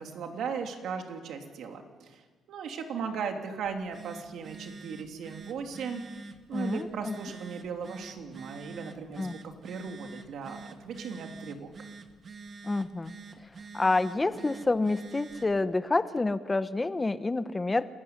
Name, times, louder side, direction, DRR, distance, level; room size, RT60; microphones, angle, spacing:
voice 1, 0.0-2.2 2.5-6.2 6.5-11.7, right 6 dB, 75° right, 4 dB, 3.1 m, -37 dB
Telephone, 3.6-15.6, right 3 dB, 45° right, 2.1 m, -47 dB
voice 2, 6.5-7.2 9.2-9.4 12.6-13.1 13.7-17.9, left 2 dB, 20° left, 12 dB, 1.0 m, -28 dB
28.5 x 14.5 x 9.6 m, 1.4 s
cardioid pair, 90°, 0 cm